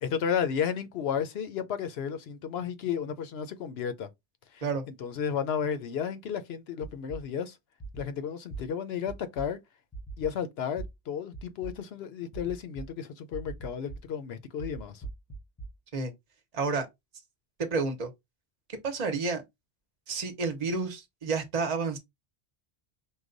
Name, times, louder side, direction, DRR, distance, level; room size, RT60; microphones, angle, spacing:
voice 1, 0.0-4.1 4.5-7.6 8.0-9.6 10.2-15.0, left 7 dB, 70° left, 0.8 m, -33 dB
sound 1, 6.8-7.2 7.8-8.0 8.5-8.6 9.1-9.4 9.9-10.3 10.8-10.9 11.3-11.7 12.3-12.8 13.3-14.0 14.6-15.7, right 4 dB, 20° left, 0.6 m, -40 dB
voice 2, 16.5-16.9 17.6-18.1 18.8-19.4 20.1-22.0, right 4 dB, 40° right, 0.9 m, -30 dB
4.7 x 2.2 x 3.8 m
omnidirectional pair, 1.1 m